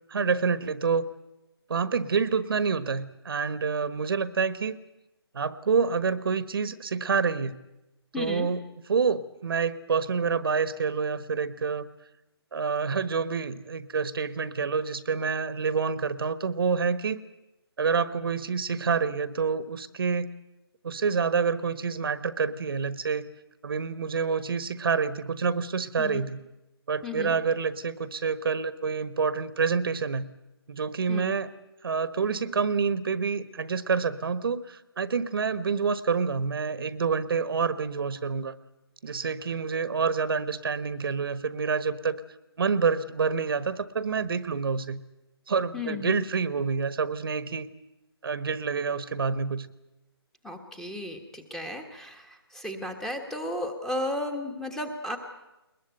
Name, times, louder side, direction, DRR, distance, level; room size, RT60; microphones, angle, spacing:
voice 1, 0.1-1.1 1.7-4.8 5.3-7.6 8.2-8.6 8.9-11.9 12.5-17.2 17.8-20.3 20.8-23.3 23.6-26.4 26.9-30.3 30.7-31.5 31.8-38.6 39.0-42.2 42.6-45.0 45.5-47.7 48.2-49.7, right 5 dB, 60° right, 14 dB, 1.3 m, -27 dB
voice 2, 8.1-8.5 26.0-26.2 27.0-27.3 31.1-31.3 45.7-46.2 50.4-55.2, left 2 dB, 5° left, 6 dB, 1.4 m, -34 dB
21.5 x 21.0 x 9.1 m, 0.98 s
hypercardioid pair, 160°, 14 cm